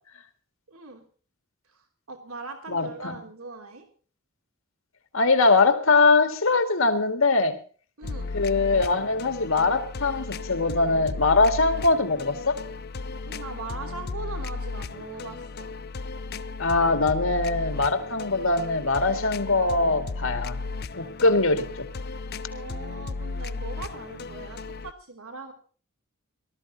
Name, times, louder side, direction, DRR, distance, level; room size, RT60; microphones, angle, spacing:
voice 1, 0.7-1.0 1.7-3.9 8.0-8.3 13.2-15.7 22.5-25.5, right 3 dB, 75° right, 4 dB, 3.1 m, -40 dB
voice 2, 2.7-3.1 5.1-7.6 8.3-12.6 16.6-20.6 21.0-21.9, left 3 dB, 60° left, 8 dB, 2.0 m, -22 dB
sound 1, 8.0-24.9, left 3 dB, 45° left, 0.6 m, -35 dB
18.5 x 13.5 x 4.0 m, 0.41 s
head